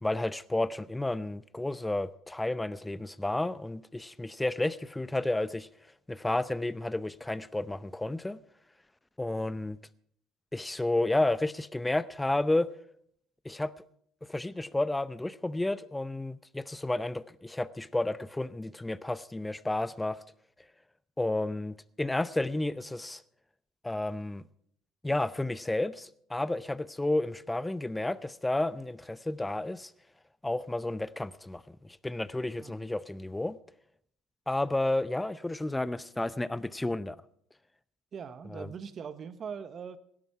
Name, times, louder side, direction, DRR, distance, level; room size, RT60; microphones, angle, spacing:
voice 1, 0.0-5.7 6.1-8.4 9.2-9.8 10.5-12.7 13.4-13.7 14.3-20.2 21.2-23.2 23.8-24.4 25.0-29.9 30.4-33.6 34.5-37.2 38.5-38.7, left 2 dB, 10° left, 0.6 m, -31 dB
voice 2, 38.1-40.0, right 7 dB, 45° right, 1.0 m, -41 dB
17.0 x 11.5 x 4.8 m
hypercardioid pair, 70°, 0 cm